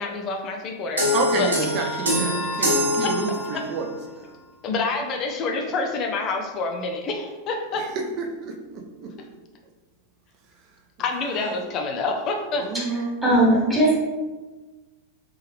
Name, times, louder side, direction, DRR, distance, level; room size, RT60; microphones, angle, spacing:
voice 1, 0.0-1.5 1.9-2.2 3.5-3.7 4.6-7.9 11.0-12.7, left 3 dB, 35° left, 3 dB, 0.5 m, -27 dB
sound 1, 1.0-3.8, left 1 dB, 75° right, 1.1 m, -24 dB
voice 2, 1.1-4.4 7.7-9.1 11.3-11.5 12.6-13.7, right 4 dB, 40° right, 2 dB, 0.6 m, -30 dB
voice 3, 13.2-14.0, right 1 dB, ahead, -6 dB, 1.3 m, -18 dB
3.5 x 3.3 x 3.2 m, 1.2 s
figure-of-eight pair, 90°, 0 cm